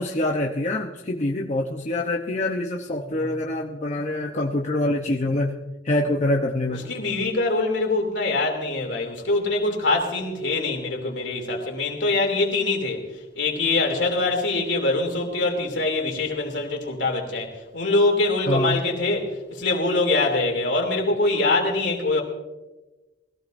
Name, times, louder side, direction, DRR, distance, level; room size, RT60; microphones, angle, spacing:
voice 1, 0.0-5.6 5.8-6.8 18.5-18.8, left 1 dB, 40° left, 0.8 m, -25 dB
voice 2, 6.9-13.0 13.3-19.3 19.6-22.2, left 2 dB, 70° left, 2.9 m, -24 dB
21.0 x 16.0 x 2.6 m
head